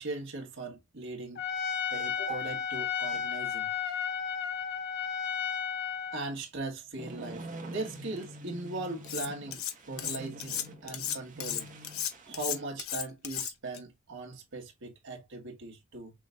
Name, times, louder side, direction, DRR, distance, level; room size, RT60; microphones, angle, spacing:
voice 1, 0.0-1.4 1.9-3.7 6.1-11.7 12.3-16.1, right 2 dB, 60° right, 1.5 m, -39 dB
Trumpet, 1.4-6.3, left 7 dB, 50° left, 1.1 m, -33 dB
sound 1, 7.0-12.7, right 1 dB, 40° right, 1.3 m, -46 dB
Cutlery silverware, 9.0-9.7 10.0-13.8, left 10 dB, 75° left, 0.8 m, -34 dB
6.0 x 3.3 x 2.4 m
head